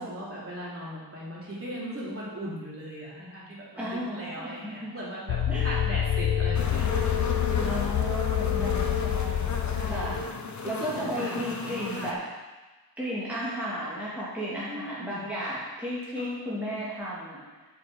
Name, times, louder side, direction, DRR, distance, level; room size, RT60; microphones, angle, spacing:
voice 1, 0.0-7.1 8.5-9.0 9.6-10.2 10.6-12.1 14.7-15.3 16.2-16.3 16.7-16.8, right 1 dB, 35° right, -7 dB, 3.0 m, -38 dB
voice 2, 3.8-4.9 5.5-5.7 7.6-9.5 9.9-10.2 10.6-12.2 13.0-17.4, equal, 5° right, -9 dB, 2.1 m, -34 dB
sound 1, 5.3-10.3, left 10 dB, 80° left, 0.6 m, -27 dB
sound 2, 6.5-12.1, left 3 dB, 45° left, 0.9 m, -35 dB
8.9 x 5.4 x 5.0 m, 1.2 s
wide cardioid pair, 115°, 40 cm